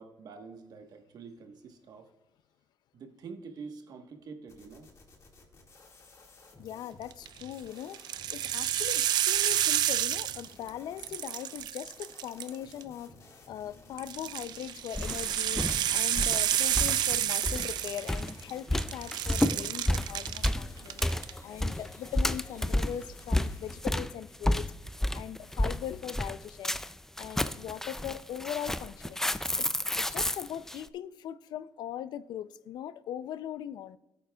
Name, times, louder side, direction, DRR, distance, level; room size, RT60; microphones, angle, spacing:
voice 1, 0.0-2.1 2.9-4.9, right 5 dB, 65° right, 1.2 m, -46 dB
sound 1, 4.5-23.8, left 2 dB, 45° left, 1.8 m, -55 dB
voice 2, 6.6-8.0 8.3-13.1 13.5-24.7 25.1-26.8 27.2-29.2 29.7-34.0, left 10 dB, 85° left, 0.4 m, -40 dB
sound 2, 7.1-7.4 7.9-10.7 11.0-12.8 14.0-18.5 18.8-20.5 20.9-21.3, right 12 dB, 85° right, 0.4 m, -30 dB
sound 3, 14.9-30.8, left 1 dB, 5° left, 0.4 m, -31 dB
16.5 x 8.6 x 2.3 m
cardioid pair, 120°, 7 cm